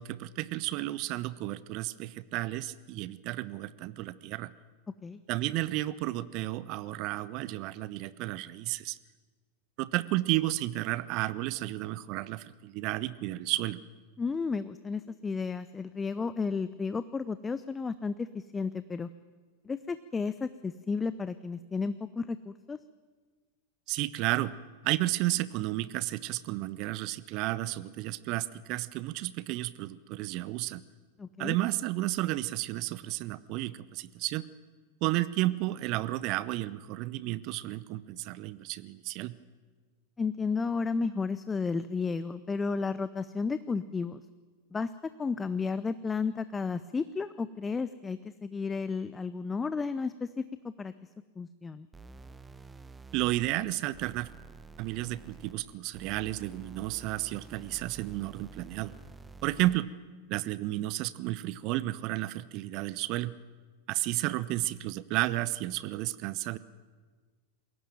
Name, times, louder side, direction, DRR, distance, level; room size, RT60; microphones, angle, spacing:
voice 1, 0.0-4.5 5.3-9.0 9.8-13.8 23.9-24.5 24.8-30.8 31.4-34.5 35.0-39.4 53.1-54.3 54.8-58.9 59.4-59.9 60.3-63.3 63.9-66.6, right 17 dB, 40° right, 18 dB, 0.8 m, -32 dB
voice 2, 14.2-19.1 19.7-22.8 31.2-31.6 40.2-44.2 44.7-44.9 45.2-50.4 50.8-50.9 51.4-51.9, left 4 dB, 15° left, 14 dB, 0.6 m, -33 dB
sound 1, 51.9-59.9, right 4 dB, 10° right, 0.8 m, -50 dB
21.5 x 17.5 x 9.1 m, 1.4 s
figure-of-eight pair, 90°, 0 cm